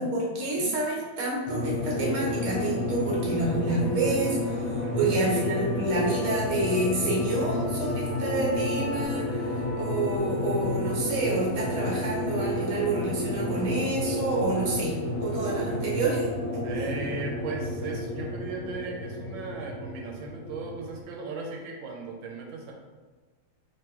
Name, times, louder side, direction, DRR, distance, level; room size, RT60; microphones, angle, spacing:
voice 1, 0.0-16.3 16.5-16.9, right 2 dB, 50° right, -4 dB, 1.1 m, -29 dB
sound 1, 1.5-21.0, left 1 dB, 55° left, 1.4 m, -31 dB
sound 2, 3.1-18.4, left 1 dB, 75° left, 0.7 m, -41 dB
voice 2, 4.8-5.2 16.6-22.7, right 4 dB, 85° right, 0 dB, 1.4 m, -37 dB
3.6 x 3.2 x 2.9 m, 1.3 s
omnidirectional pair, 2.1 m